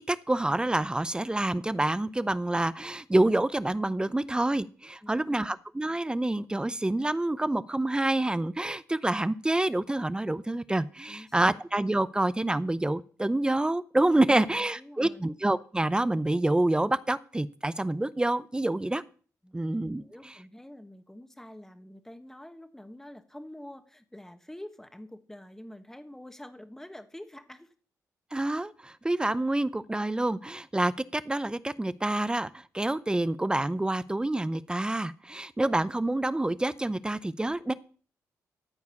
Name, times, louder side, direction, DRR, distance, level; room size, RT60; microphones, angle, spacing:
voice 1, 0.1-19.0 19.5-20.0 28.3-37.7, right 1 dB, 15° right, 16 dB, 0.6 m, -27 dB
voice 2, 5.0-5.6 11.1-11.6 14.2-15.3 19.4-19.6 20.0-27.7, left 1 dB, 5° left, 8 dB, 1.4 m, -47 dB
13.5 x 4.8 x 7.1 m, 0.42 s
cardioid pair, 75°, 7 cm